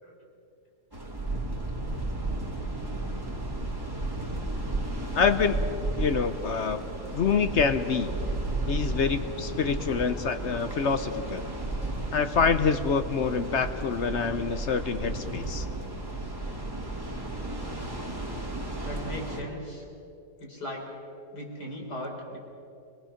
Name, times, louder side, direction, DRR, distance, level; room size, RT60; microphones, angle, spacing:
sound 1, 0.9-19.4, right 2 dB, 15° right, 2.2 m, -33 dB
voice 1, 5.1-5.7 6.0-6.8 7.1-8.1 8.7-11.5 12.1-15.7, left 5 dB, 55° left, 10 dB, 0.9 m, -26 dB
voice 2, 18.8-19.9 20.4-20.9 21.3-22.4, equal, 80° left, 0 dB, 4.5 m, -37 dB
26.5 x 18.5 x 5.8 m, 2.6 s
omnidirectional pair, 1.7 m